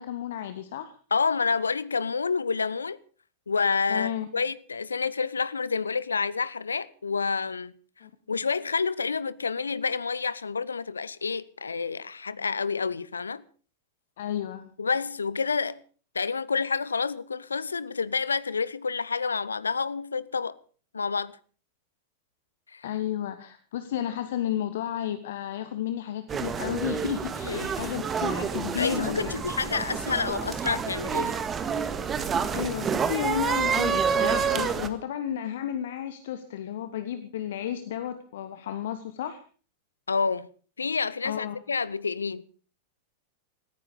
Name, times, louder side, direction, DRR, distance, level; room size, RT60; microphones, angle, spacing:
voice 1, 0.0-0.9 3.9-4.3 8.0-8.1 14.2-14.7 22.8-29.3 32.5-39.4 41.2-41.6, left 10 dB, 60° left, 1.3 m, -32 dB
voice 2, 1.1-3.0 3.5-7.7 8.3-13.4 14.8-15.8 16.1-20.6 20.9-21.4 22.7-22.8 27.4-27.7 28.8-31.4 40.1-40.5 40.8-42.4, left 5 dB, 75° left, 0.7 m, -28 dB
sound 1, 26.3-34.9, right 6 dB, 20° right, 1.7 m, -28 dB
19.0 x 14.5 x 5.2 m
figure-of-eight pair, 90°, 0 cm